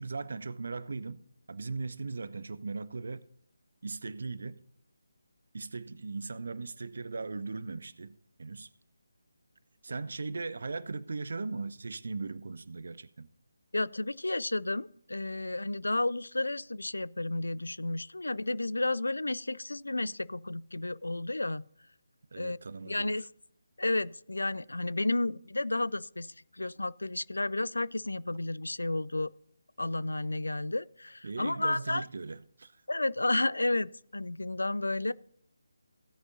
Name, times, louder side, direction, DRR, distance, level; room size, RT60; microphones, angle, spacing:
voice 1, 0.0-3.3 3.8-4.6 5.5-8.7 9.8-13.3 22.3-23.2 31.2-32.7, right 4 dB, 50° right, 0.6 m, -38 dB
voice 2, 13.7-21.7 22.4-22.6 22.8-23.2 23.8-29.3 29.8-32.0 32.9-35.1, left 2 dB, 65° left, 0.4 m, -32 dB
16.5 x 9.6 x 2.6 m
figure-of-eight pair, 150°, 0 cm